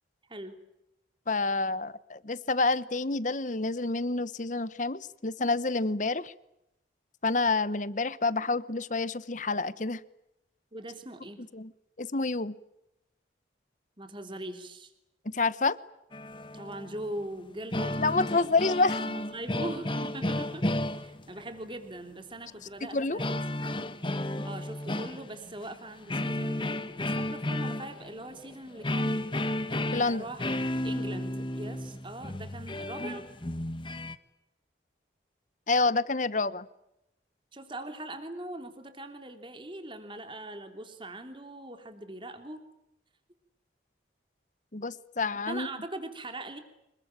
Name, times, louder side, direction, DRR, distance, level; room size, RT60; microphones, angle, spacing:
voice 1, 1.3-6.3 7.2-10.0 11.5-11.7 12.0-12.5 15.3-15.8 18.0-19.0 22.8-23.2 29.9-30.2 35.7-36.6 44.7-45.7, left 3 dB, 40° left, 17 dB, 1.0 m, -28 dB
voice 2, 10.7-11.5 14.0-14.9 16.5-18.5 19.0-20.7 20.9-24.0 24.4-29.3 29.9-30.4 30.8-33.2 37.5-42.6 45.5-46.6, right 1 dB, 25° right, 7 dB, 3.1 m, -41 dB
sound 1, 16.1-17.2 17.5-21.6 23.2-25.7 26.1-34.2, left 1 dB, 25° left, 1.5 m, -33 dB
26.5 x 22.0 x 8.9 m, 0.85 s
head